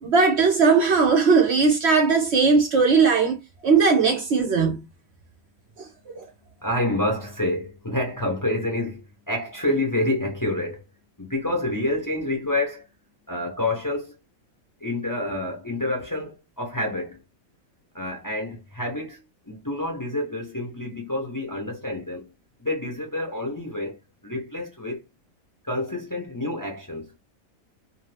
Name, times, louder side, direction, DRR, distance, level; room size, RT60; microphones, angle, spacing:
voice 1, 0.0-3.4 3.6-4.8 6.2-6.3, right 5 dB, 60° right, 0.8 m, -18 dB
voice 2, 6.6-10.8 11.2-12.9 13.3-14.1 14.8-17.2 17.9-22.3 22.6-25.0 25.6-27.1, left 1 dB, 25° left, 0.5 m, -28 dB
2.6 x 2.5 x 3.2 m
omnidirectional pair, 1.5 m